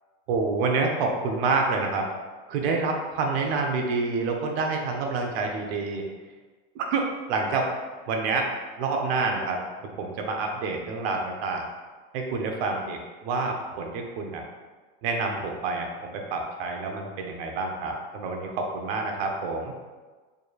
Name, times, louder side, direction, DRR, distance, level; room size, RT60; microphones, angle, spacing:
voice 1, 0.3-2.1 2.5-6.0 6.7-7.7 8.1-8.5 8.8-9.6 10.0-11.7 12.1-14.4 15.0-19.7, right 3 dB, 75° right, 2 dB, 0.8 m, -28 dB
4.9 x 3.2 x 2.4 m, 1.3 s
supercardioid pair, 125°, 31 cm